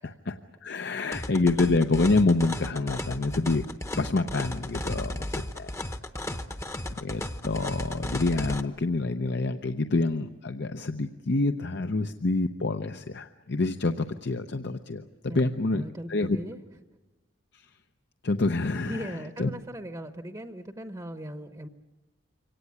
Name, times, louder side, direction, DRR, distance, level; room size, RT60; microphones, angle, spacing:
voice 1, 0.0-3.6 4.0-5.7 7.0-15.0 15.3-15.8 16.1-16.4 17.5-17.7 18.2-19.1 19.4-19.5, left 3 dB, 60° left, 7 dB, 0.7 m, -27 dB
sound 1, 1.1-8.6, left 1 dB, 15° left, 0.9 m, -34 dB
voice 2, 15.3-16.6 18.9-21.7, right 1 dB, 20° right, 8 dB, 0.9 m, -39 dB
24.5 x 18.0 x 9.6 m, 1.1 s
head